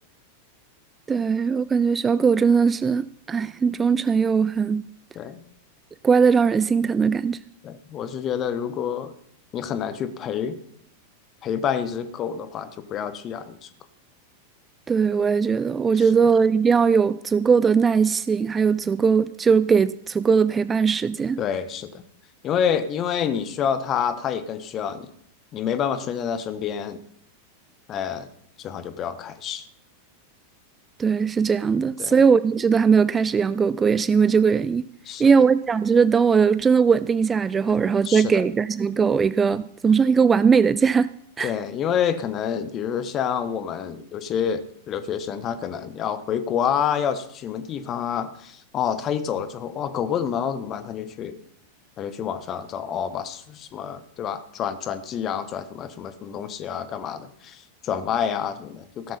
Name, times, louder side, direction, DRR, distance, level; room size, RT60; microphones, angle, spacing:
voice 1, 1.1-4.8 6.0-7.4 14.9-21.4 31.0-34.9 35.2-41.1 41.4-41.5, right 6 dB, 15° right, 16 dB, 0.5 m, -20 dB
voice 2, 7.6-9.1 9.5-10.6 11.4-13.7 15.9-16.1 21.4-21.9 22.4-25.1 25.5-27.0 27.9-28.3 28.6-29.7 31.7-32.1 35.1-35.3 38.0-38.4 41.4-51.4 52.0-59.2, left 8 dB, 30° left, 12 dB, 1.4 m, -28 dB
16.5 x 12.5 x 4.3 m, 0.70 s
figure-of-eight pair, 90°, 0 cm